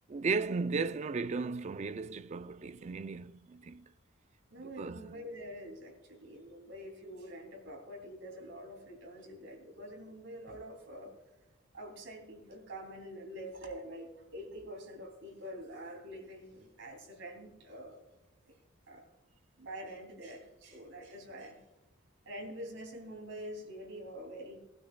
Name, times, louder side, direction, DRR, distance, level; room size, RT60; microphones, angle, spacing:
voice 1, 0.1-3.8 4.6-5.1, right 4 dB, 35° right, 0.4 m, -35 dB
voice 2, 4.5-11.1 11.7-18.0 18.5-18.6 18.9-19.1 19.6-21.6 22.2-24.6, equal, 70° right, 2.9 m, -46 dB
19.5 x 12.0 x 2.3 m
head